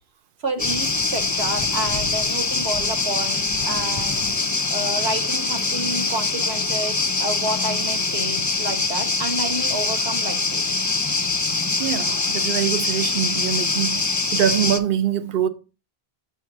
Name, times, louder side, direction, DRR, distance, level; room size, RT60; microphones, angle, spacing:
voice 1, 0.4-4.3 4.7-10.9, right 2 dB, 85° right, 1.3 m, -30 dB
sound 1, 0.6-14.8, left 3 dB, 30° left, 0.3 m, -23 dB
voice 2, 11.8-15.5, right 10 dB, 60° right, 0.8 m, -24 dB
7.3 x 2.8 x 5.9 m
omnidirectional pair, 1.0 m